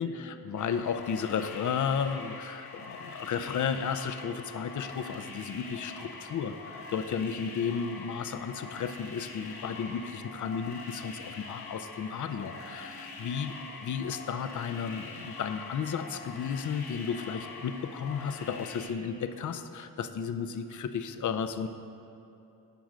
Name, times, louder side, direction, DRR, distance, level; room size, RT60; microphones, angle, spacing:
voice 1, 0.0-13.0 13.2-13.5 13.8-21.7, left 6 dB, 55° left, 10 dB, 0.6 m, -33 dB
sound 1, 0.6-18.9, left 4 dB, 70° left, 1.3 m, -44 dB
10.5 x 4.8 x 6.2 m, 2.8 s
cardioid pair, 95°, 37 cm